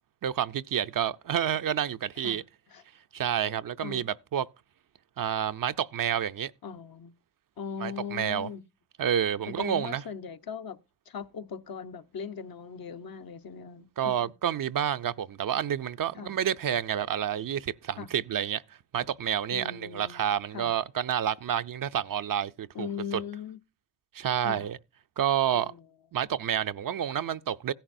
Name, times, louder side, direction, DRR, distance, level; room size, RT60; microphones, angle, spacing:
voice 1, 0.2-2.4 3.1-4.5 5.2-6.5 7.8-8.5 9.0-10.0 14.0-18.6 18.9-23.2 24.1-24.8 25.2-25.7 26.1-27.7, right 9 dB, 55° right, 0.6 m, -29 dB
voice 2, 6.6-7.1 7.6-8.6 9.5-10.8 11.1-14.3 16.1-16.3 18.0-18.1 19.5-20.7 22.7-23.6 24.4-24.6 25.5-25.9, left 7 dB, 60° left, 0.9 m, -39 dB
16.0 x 10.0 x 2.6 m
cardioid pair, 50°, 41 cm